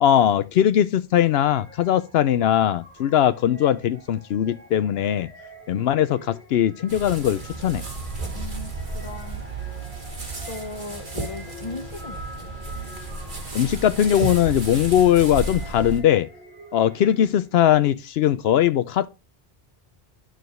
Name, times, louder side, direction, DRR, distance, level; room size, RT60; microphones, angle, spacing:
voice 1, 0.0-5.3 5.7-7.8 13.5-16.3 16.7-19.1, left 10 dB, 80° left, 0.8 m, -20 dB
sound 1, 1.4-17.6, equal, 80° right, 2.4 m, -46 dB
sound 2, 6.9-16.0, right 3 dB, 50° right, 2.1 m, -33 dB
voice 2, 8.3-9.4 10.5-12.5, left 3 dB, 35° left, 1.0 m, -37 dB
9.2 x 6.3 x 3.1 m
omnidirectional pair, 1.0 m